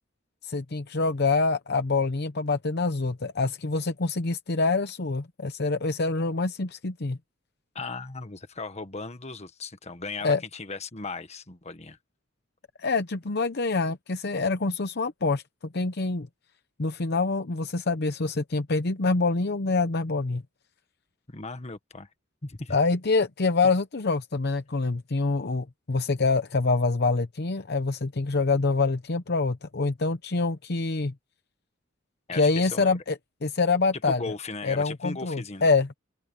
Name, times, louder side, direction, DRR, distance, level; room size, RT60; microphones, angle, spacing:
voice 1, 0.4-7.2 10.2-10.4 12.8-15.4 15.7-16.3 16.8-20.4 22.7-31.1 32.3-34.2 34.6-35.9, left 3 dB, 55° left, 0.8 m, -26 dB
voice 2, 7.7-12.0 21.3-22.1 22.4-22.8 32.3-33.0 34.0-35.7, left 3 dB, 35° left, 1.6 m, -37 dB
open air
head